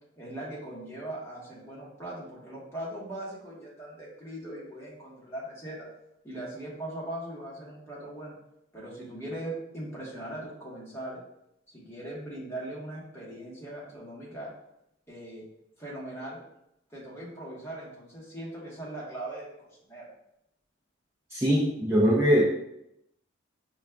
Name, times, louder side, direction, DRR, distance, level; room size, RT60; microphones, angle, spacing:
voice 1, 0.2-5.9 6.2-8.3 8.7-11.2 11.7-14.5 15.1-15.4 15.8-16.4 16.9-20.1, right 1 dB, 15° left, -6 dB, 1.2 m, -40 dB
voice 2, 21.3-22.4, equal, 15° right, -6 dB, 0.4 m, -22 dB
5.9 x 2.3 x 2.2 m, 0.82 s
head